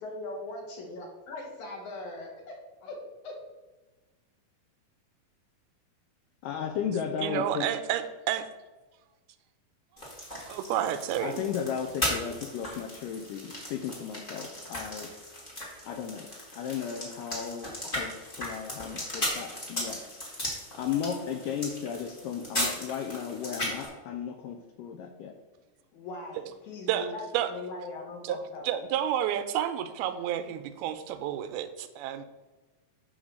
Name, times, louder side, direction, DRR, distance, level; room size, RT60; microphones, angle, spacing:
voice 1, 0.0-2.6 2.8-3.0 3.2-3.3 25.9-28.8, left 2 dB, 65° left, 1 dB, 2.2 m, -40 dB
voice 2, 6.4-7.7 11.2-15.1 15.8-16.3 16.5-20.2 20.7-25.3, left 7 dB, 85° left, 4 dB, 2.0 m, -35 dB
voice 3, 7.2-8.5 10.5-11.4 26.9-27.1 27.3-27.5 28.2-28.4 28.6-32.3, right 10 dB, 90° right, 10 dB, 2.5 m, -30 dB
sound 1, 10.0-23.9, left 1 dB, 25° left, 1.2 m, -37 dB
8.0 x 4.0 x 6.3 m, 1.2 s
omnidirectional pair, 4.4 m